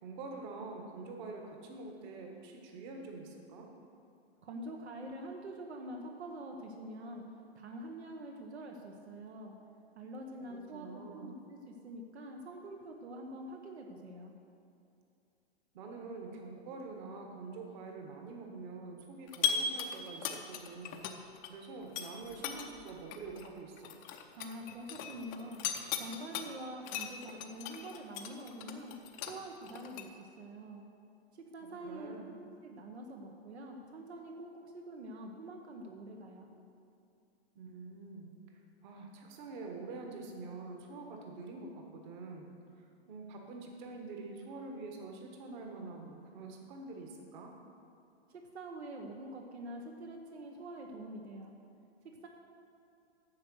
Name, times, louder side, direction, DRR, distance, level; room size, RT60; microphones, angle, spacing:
voice 1, 0.0-3.7 10.5-11.3 15.7-21.0 21.4-23.9 31.8-32.3 37.5-38.3 38.8-42.5 42.8-47.5, right 3 dB, 45° right, 2 dB, 1.6 m, -46 dB
voice 2, 4.4-7.2 7.5-9.5 9.9-14.3 24.4-28.9 29.2-30.8 31.3-36.5 48.3-51.5 52.2-52.3, right 1 dB, 80° right, 2 dB, 1.2 m, -46 dB
sound 1, 19.3-21.5 21.8-26.4 26.8-30.0, left 9 dB, 25° left, 0.6 m, -38 dB
9.5 x 6.4 x 6.3 m, 2.6 s
hypercardioid pair, 135°, 33 cm